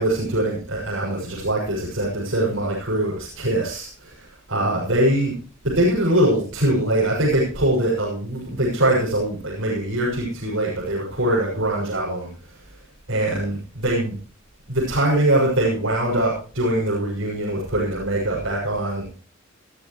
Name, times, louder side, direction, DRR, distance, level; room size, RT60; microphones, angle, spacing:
voice 1, 0.0-5.3 5.7-12.3 13.1-14.1 14.7-19.1, right 1 dB, 70° right, -6 dB, 6.6 m, -22 dB
20.5 x 13.5 x 3.2 m, 0.37 s
head